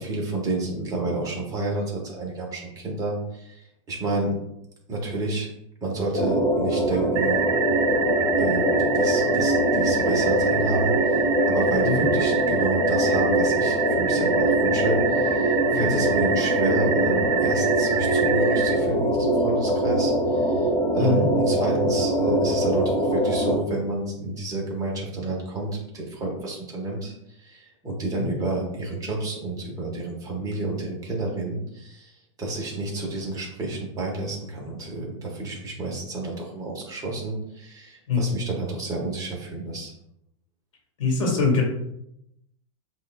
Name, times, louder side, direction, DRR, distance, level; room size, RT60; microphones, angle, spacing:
voice 1, 0.0-3.6 3.9-4.3 4.9-5.5 5.8-7.4 8.4-20.7 20.9-27.1 27.4-32.1 32.4-39.9, right 2 dB, 20° right, -2 dB, 1.3 m, -30 dB
sound 1, 6.1-23.5, right 1 dB, 20° left, 1.1 m, -23 dB
sound 2, 7.2-18.8, right 9 dB, 65° right, 0.6 m, -28 dB
voice 2, 41.0-41.6, left 4 dB, 85° left, 0 dB, 1.6 m, -23 dB
7.9 x 2.6 x 2.2 m, 0.79 s
supercardioid pair, 140°, 16 cm